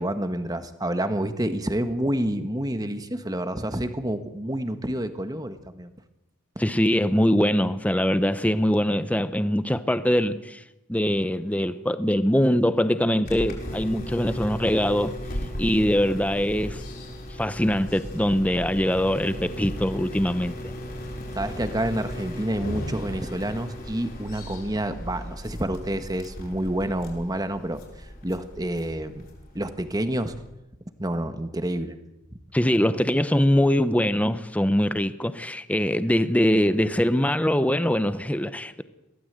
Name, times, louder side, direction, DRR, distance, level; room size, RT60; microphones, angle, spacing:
voice 1, 0.0-5.9 21.3-27.8 28.2-29.3 29.5-30.3 31.0-32.0, right 1 dB, 20° right, 1.4 m, -28 dB
voice 2, 6.6-10.6 10.9-15.2 15.6-16.8 17.4-20.7 32.5-38.8, equal, 5° left, 0.9 m, -23 dB
sound 1, 13.2-30.5, equal, 45° left, 5.6 m, -36 dB
22.5 x 16.5 x 8.1 m
head